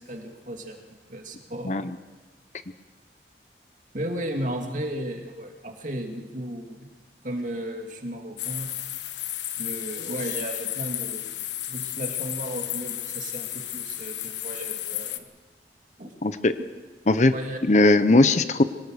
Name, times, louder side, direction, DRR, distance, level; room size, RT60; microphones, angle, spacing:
voice 1, 0.0-1.9 3.9-6.9 7.2-8.7 9.6-11.3 11.7-15.2 16.0-16.2 17.3-17.6, right 1 dB, 45° right, 3 dB, 2.4 m, -34 dB
voice 2, 1.6-1.9 16.2-16.5 17.1-17.3 17.7-18.6, left 2 dB, 40° left, 12 dB, 0.7 m, -19 dB
sound 1, 8.4-15.2, left 12 dB, 90° left, 1.2 m, -33 dB
23.0 x 18.5 x 6.5 m, 1.3 s
head